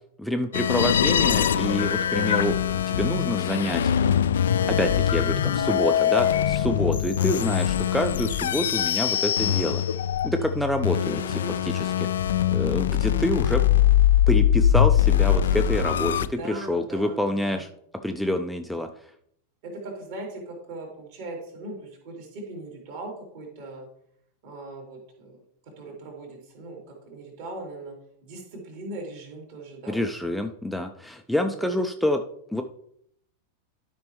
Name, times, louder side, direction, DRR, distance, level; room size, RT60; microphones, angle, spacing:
voice 1, 0.2-2.6 2.9-3.9 4.8-9.8 10.2-12.1 12.5-13.6 14.3-17.7 18.0-18.9 29.9-32.2 32.5-32.6, left 1 dB, ahead, 5 dB, 0.5 m, -27 dB
sound 1, 0.5-16.3, left 10 dB, 65° left, 0.3 m, -22 dB
voice 2, 4.6-5.0 7.2-7.5 10.8-11.6 16.2-17.7 19.6-23.9 24.4-28.0 28.2-30.0 31.4-31.8, right 2 dB, 50° right, 1 dB, 2.8 m, -39 dB
12.5 x 5.2 x 3.1 m, 0.70 s
figure-of-eight pair, 90°, 0 cm